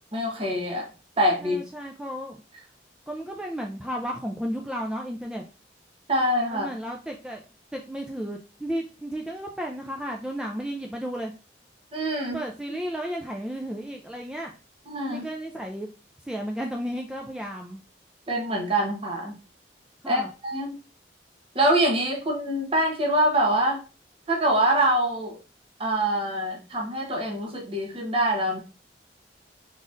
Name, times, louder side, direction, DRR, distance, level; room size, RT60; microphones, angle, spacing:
voice 1, 0.1-0.9 1.2-1.6 6.1-6.7 11.9-12.4 14.9-15.3 18.3-19.3 20.1-20.8 21.5-23.8 24.3-25.4 25.8-28.6, right 1 dB, 30° right, 0 dB, 1.0 m, -24 dB
voice 2, 1.4-2.4 3.1-5.4 6.5-7.4 7.7-11.3 12.3-14.5 15.1-15.9 16.3-17.8 20.0-20.3, equal, 5° right, 1 dB, 0.3 m, -33 dB
4.0 x 3.7 x 2.5 m, 0.32 s
head